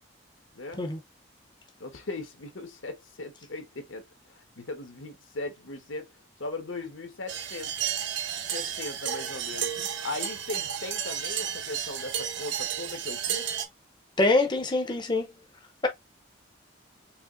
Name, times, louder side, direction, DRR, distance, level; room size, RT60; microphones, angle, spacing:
voice 1, 0.5-0.9 1.8-4.0 4.3-6.1 6.4-7.7 8.4-13.5, left 2 dB, 80° left, 1.2 m, -38 dB
sound 1, 7.3-13.7, right 8 dB, 65° right, 0.9 m, -32 dB
voice 2, 14.2-15.3, left 2 dB, 25° left, 0.6 m, -24 dB
4.9 x 3.4 x 2.5 m
head